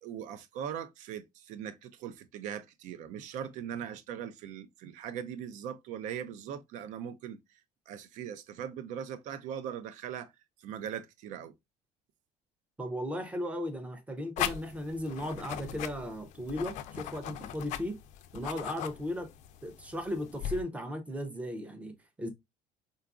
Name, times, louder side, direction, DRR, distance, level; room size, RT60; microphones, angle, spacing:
voice 1, 0.0-7.4 7.9-10.3 10.6-11.5, right 9 dB, 65° right, 0.5 m, -40 dB
voice 2, 12.8-18.0 18.3-19.3 19.6-21.9 22.2-22.3, equal, 10° right, 0.5 m, -36 dB
sound 1, 14.4-20.6, left 11 dB, 60° left, 0.4 m, -39 dB
3.9 x 2.3 x 2.3 m
cardioid pair, 160°, 14 cm